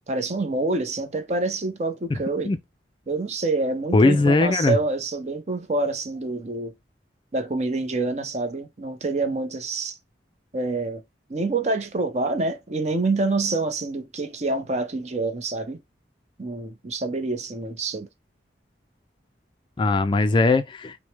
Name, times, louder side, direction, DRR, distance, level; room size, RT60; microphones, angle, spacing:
voice 1, 0.1-2.5 3.1-6.7 7.3-10.0 10.5-11.0 11.3-15.8 16.4-18.1, right 3 dB, 40° right, 0.7 m, -27 dB
voice 2, 3.9-4.8 19.8-21.0, left 3 dB, 25° left, 0.3 m, -19 dB
6.0 x 2.1 x 3.2 m
head